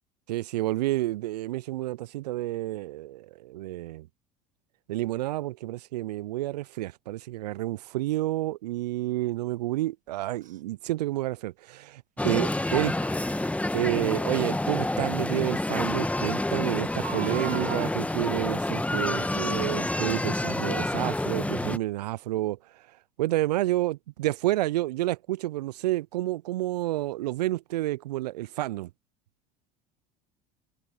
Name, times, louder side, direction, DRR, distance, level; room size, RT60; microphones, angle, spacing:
voice 1, 0.3-4.1 4.9-12.9 13.7-22.6 23.2-28.9, right 16 dB, 75° right, 0.5 m, -30 dB
Crying sobbing, 10.4-10.6 13.0-13.2 14.8-14.9 15.4-15.5 15.7-15.8 16.9-18.0 18.9-19.2 19.8-19.9, right 11 dB, 40° right, 1.3 m, -39 dB
sound 1, 12.2-21.8, left 1 dB, 5° left, 1.5 m, -28 dB
hypercardioid pair, 75°, 21 cm